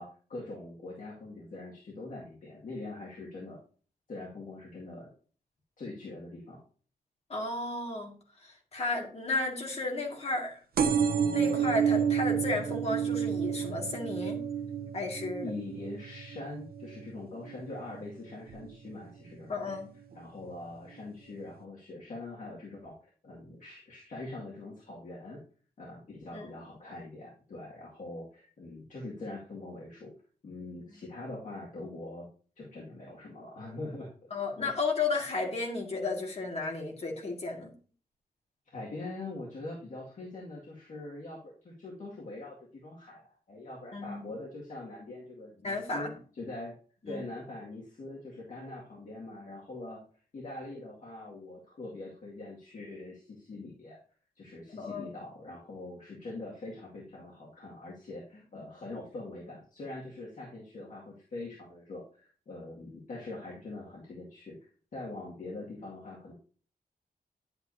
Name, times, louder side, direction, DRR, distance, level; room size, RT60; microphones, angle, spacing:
voice 1, 0.0-3.6 4.1-5.1 5.8-6.6 15.4-19.8 20.1-23.0 23.2-25.4 25.8-30.1 30.4-32.3 32.6-34.3 34.6-34.7 38.7-41.4 41.6-43.2 43.5-46.7 47.1-50.0 50.3-54.0 54.4-64.6 64.9-66.3, left 2 dB, 60° left, -5 dB, 2.2 m, -43 dB
voice 2, 7.3-8.1 8.7-10.6 11.3-14.4 14.9-15.5 19.5-19.9 26.3-26.5 34.3-37.7 43.9-44.2 45.6-46.1 47.1-47.2 54.8-55.1, left 3 dB, 45° left, 1 dB, 2.1 m, -33 dB
sound 1, 10.8-18.0 18.5-18.9 19.8-19.9 20.1-20.2 20.4-20.5, right 7 dB, 80° right, 0.7 m, -30 dB
10.5 x 8.1 x 2.8 m, 0.41 s
wide cardioid pair, 165°, 15 cm